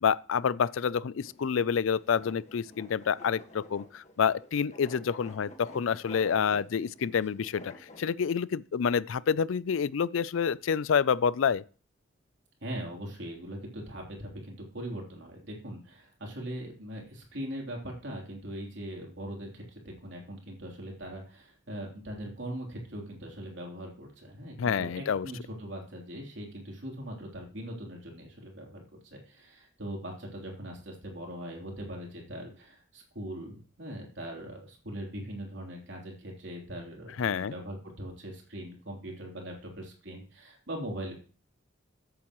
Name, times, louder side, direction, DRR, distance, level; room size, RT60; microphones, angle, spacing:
voice 1, 0.0-7.7 8.0-11.6 24.6-25.3 37.2-37.5, left 7 dB, 80° left, 0.4 m, -28 dB
sound 1, 1.2-8.1, left 1 dB, 35° left, 1.6 m, -50 dB
voice 2, 12.6-41.1, right 1 dB, 60° right, 3.5 m, -41 dB
14.5 x 8.4 x 3.1 m
head